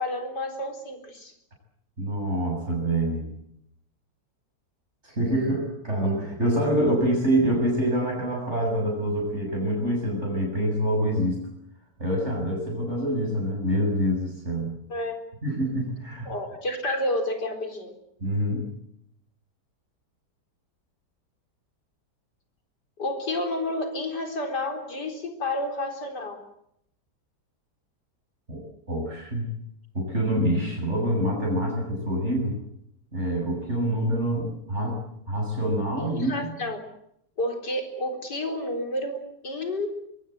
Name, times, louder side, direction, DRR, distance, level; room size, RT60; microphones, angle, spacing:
voice 1, 0.0-1.3 14.9-15.2 16.2-17.9 23.0-26.4 36.0-36.8 37.4-39.9, left 1 dB, 80° left, 6 dB, 4.7 m, -30 dB
voice 2, 2.0-3.3 5.0-11.4 12.0-14.7 15.4-16.3 18.2-18.6 28.5-28.6 28.9-29.5 29.9-32.6 33.1-35.0 35.3-36.6, equal, 40° right, -1 dB, 7.8 m, -26 dB
26.0 x 23.0 x 7.9 m, 0.74 s
omnidirectional pair, 1.8 m